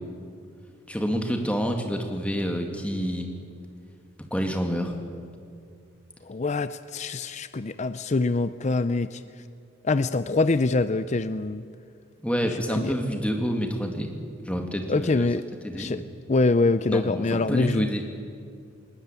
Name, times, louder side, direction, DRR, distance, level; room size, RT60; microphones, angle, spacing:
voice 1, 0.9-3.3 4.3-5.0 12.2-14.1 14.5-15.3 15.6-16.0 16.9-18.1, equal, 5° left, 3 dB, 2.1 m, -28 dB
voice 2, 6.2-9.2 9.8-11.6 12.5-12.9 14.9-15.4 15.7-16.0 16.3-17.9, left 3 dB, 35° left, 13 dB, 0.5 m, -24 dB
20.5 x 19.5 x 8.9 m, 2.3 s
head